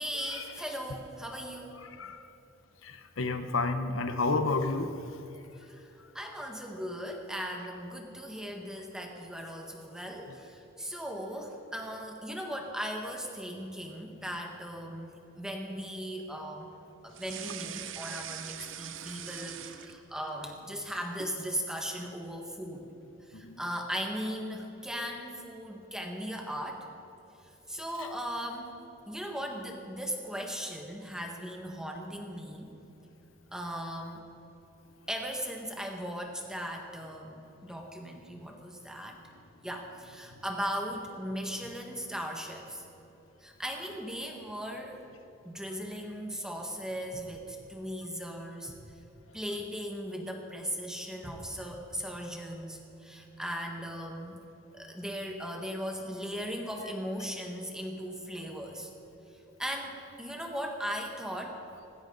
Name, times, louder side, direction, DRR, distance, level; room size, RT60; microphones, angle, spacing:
voice 1, 0.0-1.9 5.6-16.7 17.0-22.9 23.3-26.9 27.7-28.7 29.1-32.7 33.5-34.2 35.1-39.2 39.6-42.8 43.4-45.0 45.4-48.7 49.3-54.4 54.7-58.9 59.6-61.6, equal, 5° right, 1 dB, 1.6 m, -38 dB
voice 2, 1.8-2.3 2.8-4.9 23.3-23.6 28.0-28.1, left 3 dB, 85° left, 8 dB, 0.9 m, -31 dB
sound 1, 17.1-20.3 20.7-21.4, right 10 dB, 70° right, 0.7 m, -42 dB
sound 2, 47.1-47.7 48.7-49.1 51.2-51.8 52.6-52.7, equal, 30° left, 3.5 m, -50 dB
19.5 x 15.5 x 4.0 m, 2.9 s
head